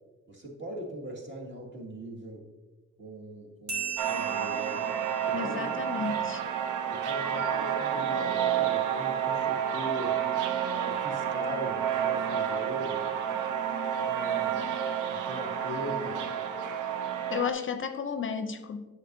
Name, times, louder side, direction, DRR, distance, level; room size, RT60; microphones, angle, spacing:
voice 1, 0.3-2.5 3.0-5.7 6.0-6.1 6.9-10.2 10.7-13.1 14.0-14.8 15.1-16.3, right 1 dB, 40° right, -1 dB, 1.8 m, -40 dB
sound 1, 3.7-6.7, right 7 dB, 60° right, 2.1 m, -38 dB
sound 2, 4.0-17.5, right 9 dB, 90° right, 0.6 m, -30 dB
voice 2, 5.3-6.4 17.3-18.9, left 6 dB, 40° left, 8 dB, 0.5 m, -33 dB
8.2 x 6.6 x 2.6 m, 1.3 s
cardioid pair, 90°, 30 cm